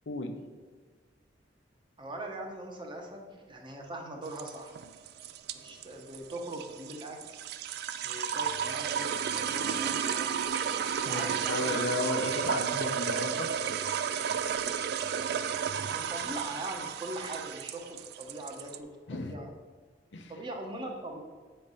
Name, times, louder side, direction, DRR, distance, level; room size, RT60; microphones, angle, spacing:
voice 1, 2.0-4.7 5.5-7.4 8.0-10.5 11.0-11.8 15.8-19.5 20.3-21.2, right 1 dB, 25° right, 2 dB, 0.9 m, -41 dB
sound 1, 4.2-18.8, right 8 dB, 60° right, 0.3 m, -32 dB
voice 2, 11.1-13.5 19.1-19.3 20.1-20.4, left 2 dB, 80° left, 5 dB, 0.7 m, -34 dB
7.6 x 3.3 x 5.5 m, 1.5 s
head